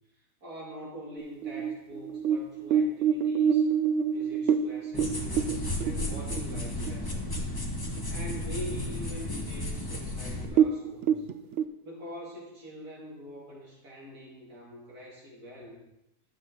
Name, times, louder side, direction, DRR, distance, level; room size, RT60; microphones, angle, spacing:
voice 1, 0.4-3.7 4.0-7.5 8.1-11.3 11.8-15.8, equal, 60° right, -4 dB, 3.4 m, -44 dB
sound 1, 1.2-7.0 7.4-7.5 7.9-8.4 8.8-8.9 9.6-9.7 9.9-10.1 10.4-11.6, right 7 dB, 90° right, 0.6 m, -26 dB
sound 2, 4.9-10.4, left 1 dB, 15° left, 1.0 m, -33 dB
11.5 x 7.2 x 4.0 m, 0.89 s
omnidirectional pair, 1.8 m